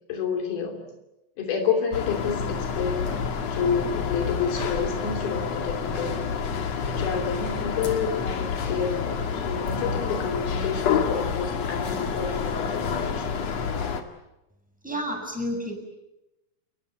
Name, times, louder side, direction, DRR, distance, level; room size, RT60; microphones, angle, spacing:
voice 1, 0.1-0.9 1.4-3.1 3.5-6.4 6.8-13.5, left 6 dB, 85° left, 4 dB, 4.8 m, -29 dB
sound 1, 1.9-14.0, left 6 dB, 50° left, 2.9 m, -28 dB
voice 2, 14.8-15.7, equal, ahead, 2 dB, 6.8 m, -30 dB
30.0 x 21.5 x 8.1 m, 0.93 s
omnidirectional pair, 4.2 m